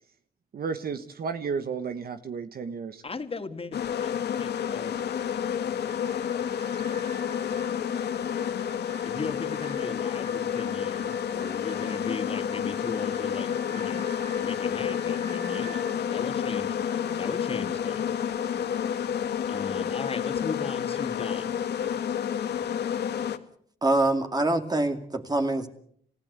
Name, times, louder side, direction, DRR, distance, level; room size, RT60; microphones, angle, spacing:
voice 1, 0.5-3.0, right 5 dB, 60° right, 9 dB, 1.4 m, -33 dB
voice 2, 3.0-5.0 9.1-18.2 19.5-21.6, left 4 dB, 35° left, 7 dB, 2.5 m, -38 dB
sound 1, 3.7-23.4, left 8 dB, 80° left, 1.8 m, -30 dB
sound 2, 5.8-16.0, right 3 dB, 90° right, 7.6 m, -49 dB
voice 3, 23.8-25.7, right 2 dB, 25° right, 6 dB, 2.5 m, -25 dB
28.5 x 16.0 x 8.2 m, 0.65 s
cardioid pair, 100°, 17 cm